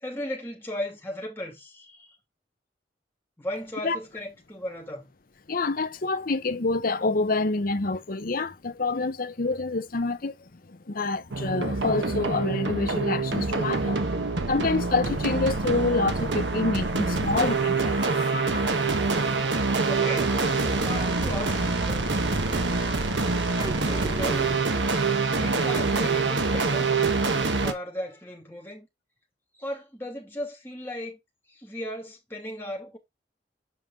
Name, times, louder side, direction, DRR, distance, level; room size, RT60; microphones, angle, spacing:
voice 1, 0.0-2.2 3.4-5.1 19.9-20.4 20.8-22.5 23.8-24.5 25.3-26.9 27.6-28.9 29.5-31.2 31.5-33.0, left 1 dB, 15° left, 2.8 m, -36 dB
voice 2, 5.5-10.3 10.7-18.8 19.4-19.5, left 3 dB, 50° left, 0.8 m, -27 dB
sound 1, 11.3-27.7, right 3 dB, 80° right, 1.3 m, -26 dB
sound 2, 17.3-24.5, right 2 dB, 20° right, 1.1 m, -38 dB
7.8 x 5.3 x 3.7 m
head